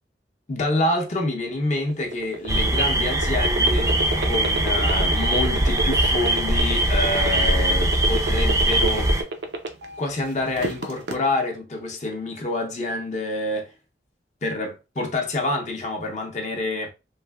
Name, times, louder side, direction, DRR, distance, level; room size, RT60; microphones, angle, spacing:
voice 1, 0.5-9.1 10.0-13.7 14.4-16.9, left 2 dB, 40° left, 0.6 m, -27 dB
sound 1, 1.8-10.0 10.4-11.1, right 3 dB, 80° right, 0.5 m, -28 dB
sound 2, 2.5-9.2, right 1 dB, 20° right, 0.4 m, -21 dB
3.2 x 2.6 x 2.2 m
head